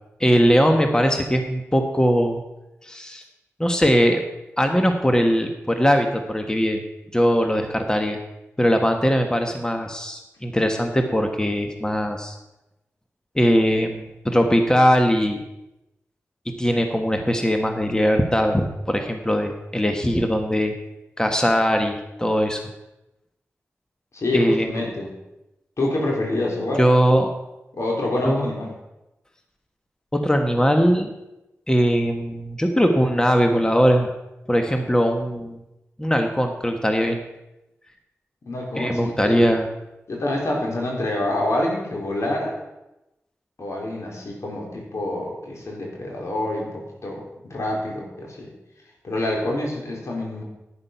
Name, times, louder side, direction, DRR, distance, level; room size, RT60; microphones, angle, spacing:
voice 1, 0.2-2.4 2.8-3.2 3.6-4.2 4.6-6.8 7.1-8.2 8.6-12.4 13.3-15.4 16.6-20.7 21.2-22.6 24.3-24.7 26.8-27.3 28.2-28.5 30.1-31.1 31.7-34.1 34.5-35.6 36.0-37.2 38.7-39.7, equal, 15° left, 4 dB, 1.4 m, -20 dB
voice 2, 24.1-25.1 25.8-26.8 27.7-28.7 38.5-39.4 40.1-42.6 43.6-48.5 49.0-50.4, left 1 dB, 70° left, -1 dB, 3.7 m, -27 dB
11.0 x 9.9 x 5.8 m, 0.94 s
cardioid pair, 55°, 5 cm